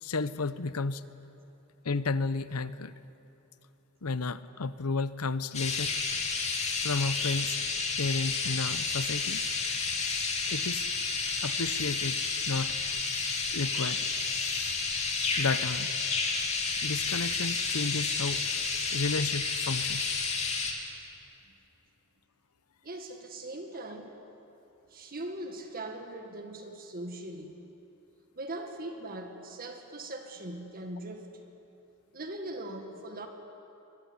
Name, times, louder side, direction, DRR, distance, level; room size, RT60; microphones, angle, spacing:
voice 1, 0.0-1.0 1.8-2.9 4.0-5.9 6.8-7.6 8.0-9.4 10.5-10.9 11.4-12.2 12.5-12.7 13.5-14.1 15.4-15.9 16.8-18.4 18.9-20.1, left 3 dB, 90° left, 14 dB, 0.9 m, -32 dB
sound 1, 5.5-20.7, left 4 dB, 30° left, 2.9 m, -31 dB
voice 2, 22.8-24.1 24.9-27.6 28.4-31.3 32.1-33.3, right 1 dB, 40° right, 5 dB, 1.9 m, -40 dB
23.0 x 21.0 x 9.7 m, 2.9 s
head